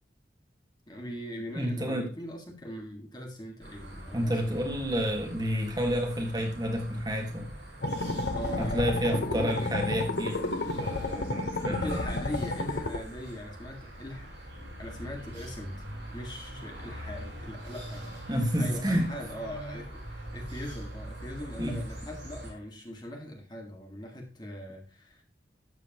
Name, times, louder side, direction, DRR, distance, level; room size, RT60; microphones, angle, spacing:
voice 1, 0.9-4.6 8.3-9.7 11.7-14.5 14.8-25.2, equal, 25° left, 1.8 m, -41 dB
voice 2, 1.5-2.1 4.1-7.5 8.6-12.0 18.3-19.1 21.6-21.8, equal, 20° right, 1.7 m, -30 dB
sound 1, 3.6-22.5, right 1 dB, 80° right, 6.3 m, -43 dB
sound 2, 7.8-13.0, left 2 dB, 60° left, 1.0 m, -31 dB
12.5 x 8.2 x 3.0 m
head